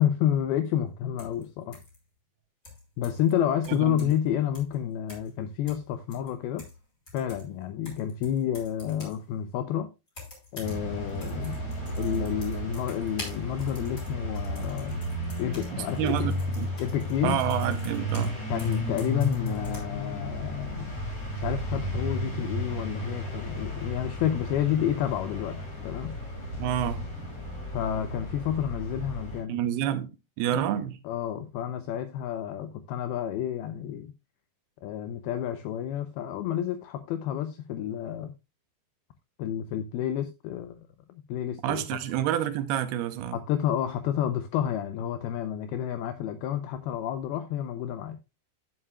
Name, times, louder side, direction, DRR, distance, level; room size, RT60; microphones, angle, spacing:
voice 1, 0.0-1.8 3.0-6.6 7.1-9.9 10.5-11.6 12.0-15.0 15.4-16.2 16.8-17.4 18.5-20.9 21.3-25.6 25.8-26.2 27.7-29.6 30.5-34.1 34.8-38.3 39.4-40.8 41.3-42.0 43.3-48.2, left 10 dB, 80° left, 2.3 m, -30 dB
sound 1, 1.2-1.4 1.7-2.0 2.6-3.3 3.6-4.3 4.5-4.7 5.1-5.4 5.7-6.8 7.1-9.2 10.1-10.8 11.1-18.3 18.6-19.8, left 2 dB, 20° left, 5.1 m, -47 dB
voice 2, 3.7-4.1 15.7-16.7 17.2-18.4 26.6-27.1 29.5-30.1 30.4-31.0 41.6-43.4, right 11 dB, 75° right, 2.4 m, -28 dB
sound 2, 10.6-29.4, equal, 35° left, 6.1 m, -33 dB
11.0 x 9.8 x 2.3 m
omnidirectional pair, 5.1 m